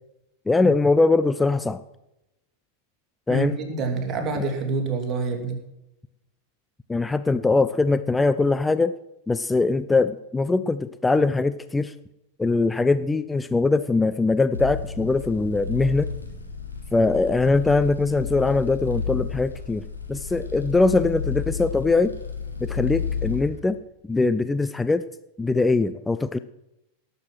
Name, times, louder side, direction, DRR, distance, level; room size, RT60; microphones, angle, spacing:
voice 1, 0.5-1.8 3.3-3.5 4.4-4.5 6.9-8.9 9.3-11.9 12.4-16.1 16.9-19.8 20.1-22.1 22.6-23.8 24.1-25.1 25.4-26.4, left 3 dB, 10° left, 13 dB, 0.5 m, -22 dB
voice 2, 3.3-5.6, right 3 dB, 30° right, 3 dB, 3.2 m, -27 dB
sound 1, 14.5-23.5, left 6 dB, 85° left, 2.5 m, -32 dB
18.0 x 7.8 x 6.3 m, 0.89 s
figure-of-eight pair, 90°, 0 cm